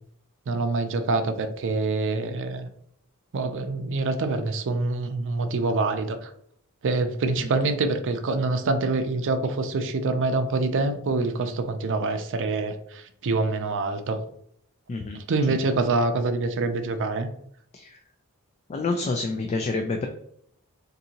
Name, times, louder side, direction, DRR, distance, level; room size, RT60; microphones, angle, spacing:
voice 1, 0.5-2.7 3.3-6.3 6.8-14.2 15.1-17.3, right 3 dB, 60° right, 7 dB, 0.5 m, -26 dB
voice 2, 14.9-15.2 17.7-18.0 18.7-20.1, left 3 dB, 30° left, 4 dB, 0.3 m, -28 dB
3.8 x 2.6 x 2.8 m, 0.68 s
head